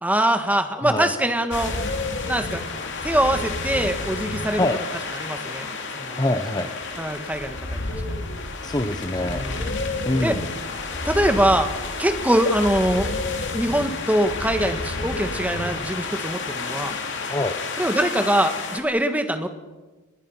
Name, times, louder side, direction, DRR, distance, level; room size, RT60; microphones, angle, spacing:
voice 1, 0.0-1.7 2.3-2.6 3.0-4.6 5.2-5.7 5.9-6.2 7.0-7.5 9.2-9.8 10.2-10.4 11.0-11.7 12.0-13.1 13.5-16.9 17.8-19.5, right 1 dB, 5° right, 7 dB, 1.7 m, -23 dB
voice 2, 0.8-1.1 4.5-4.8 6.2-6.7 8.6-9.5 10.0-10.4 17.3-17.6, left 1 dB, 20° left, 7 dB, 1.0 m, -24 dB
sound 1, 1.5-18.8, left 3 dB, 55° left, 2.9 m, -30 dB
29.0 x 20.5 x 5.8 m, 1.2 s
head